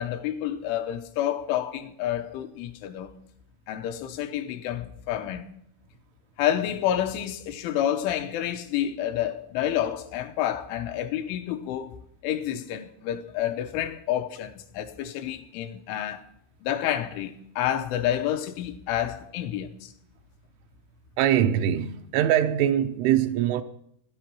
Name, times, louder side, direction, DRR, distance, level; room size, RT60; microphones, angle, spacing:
voice 1, 0.0-3.1 3.7-5.5 6.4-12.0 12.2-16.3 16.6-19.9, left 11 dB, 75° left, 3.1 m, -29 dB
voice 2, 21.2-23.6, right 10 dB, 80° right, 3.1 m, -23 dB
16.5 x 12.0 x 6.1 m
omnidirectional pair, 5.9 m